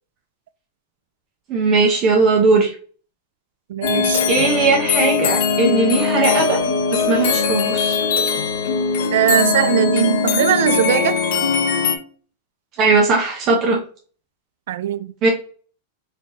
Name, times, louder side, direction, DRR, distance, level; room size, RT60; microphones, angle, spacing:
voice 1, 1.5-2.7 4.3-6.6 6.9-8.0 12.8-13.8 15.2-15.3, right 3 dB, 35° right, 0.8 m, -18 dB
voice 2, 3.7-4.2 9.1-11.2 14.7-15.1, right 11 dB, 75° right, 0.3 m, -19 dB
sound 1, 3.8-12.0, left 5 dB, 65° left, 0.6 m, -20 dB
4.2 x 2.7 x 3.1 m
supercardioid pair, 155°, 0 cm